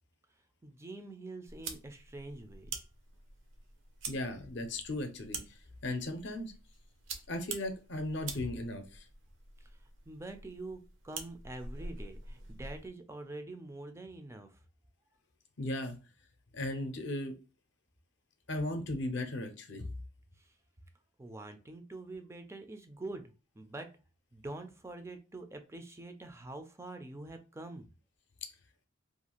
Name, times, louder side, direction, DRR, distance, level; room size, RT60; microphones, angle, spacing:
voice 1, 0.6-2.8 9.6-9.7 10.1-14.6 20.4-20.5 21.2-23.9 24.3-27.9, right 2 dB, 15° right, 7 dB, 0.3 m, -45 dB
sound 1, 1.5-12.9, right 4 dB, 65° right, 0.6 m, -46 dB
voice 2, 4.1-5.6 5.8-6.5 7.3-9.1 15.6-16.0 16.5-17.3 18.5-19.9, left 1 dB, 60° left, 6 dB, 0.5 m, -36 dB
2.5 x 2.3 x 2.9 m, 0.33 s
head